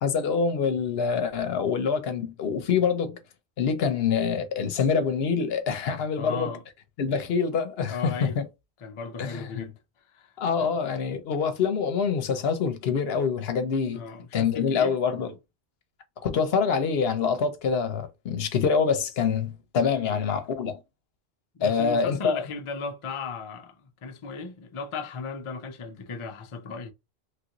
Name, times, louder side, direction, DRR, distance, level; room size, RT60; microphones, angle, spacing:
voice 1, 0.0-3.2 3.6-6.5 7.0-8.4 9.2-9.7 10.4-14.0 14.3-15.3 16.2-20.8 21.6-22.4, left 6 dB, 70° left, 0.8 m, -25 dB
voice 2, 6.2-6.6 7.9-8.4 8.8-9.7 10.0-10.7 13.9-15.0 20.0-20.2 21.5-26.9, left 4 dB, 40° left, 0.4 m, -36 dB
3.1 x 2.5 x 2.9 m
omnidirectional pair, 1.1 m